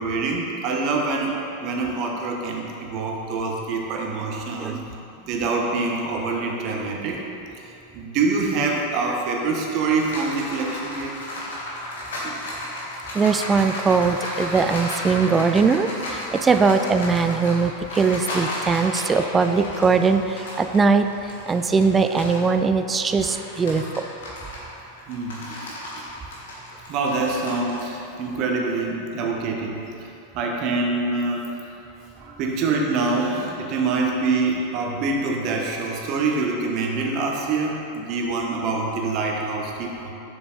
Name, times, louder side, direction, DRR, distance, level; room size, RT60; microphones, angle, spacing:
voice 1, 0.0-4.8 5.3-7.2 7.6-11.1 12.2-12.4 25.1-26.1 26.9-30.1 30.3-31.7 32.2-40.1, right 3 dB, 40° right, 0 dB, 1.1 m, -25 dB
sound 1, 9.6-22.5 22.9-27.8, left 1 dB, 60° left, 1.7 m, -33 dB
voice 2, 13.1-21.1 21.5-24.0, right 4 dB, 15° right, 9 dB, 0.4 m, -20 dB
7.1 x 6.9 x 4.0 m, 2.9 s
figure-of-eight pair, 90°, 0 cm